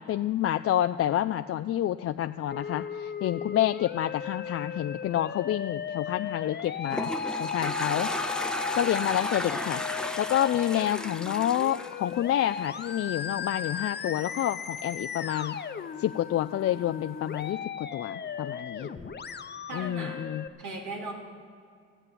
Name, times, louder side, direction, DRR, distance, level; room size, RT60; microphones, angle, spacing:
voice 1, 0.0-7.1 7.4-8.3 8.7-9.8 10.2-15.6 16.0-18.9 19.7-20.4, left 12 dB, 50° left, 9 dB, 0.4 m, -28 dB
Musical instrument, 2.5-20.5, left 7 dB, 35° left, 0.8 m, -36 dB
Toilet flush, 6.5-12.9, left 1 dB, 5° left, 0.7 m, -34 dB
voice 2, 18.8-19.1 19.7-20.2 20.6-21.1, right 2 dB, 85° right, -1 dB, 3.0 m, -38 dB
14.0 x 9.0 x 8.4 m, 2.3 s
cardioid pair, 90°, 30 cm